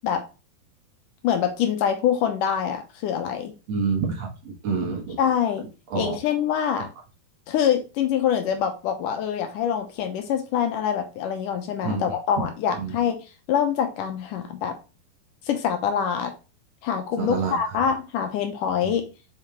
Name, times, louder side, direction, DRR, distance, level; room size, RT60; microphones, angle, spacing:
voice 1, 1.2-3.5 5.2-5.6 6.0-6.9 7.5-13.2 13.5-14.8 15.5-16.3 16.8-19.1, left 8 dB, 70° left, 5 dB, 2.2 m, -25 dB
voice 2, 3.7-5.2 5.9-6.2 11.8-12.0 12.8-13.0 17.2-17.6, right 5 dB, 60° right, 0 dB, 1.8 m, -27 dB
5.6 x 5.5 x 3.1 m, 0.30 s
omnidirectional pair, 4.5 m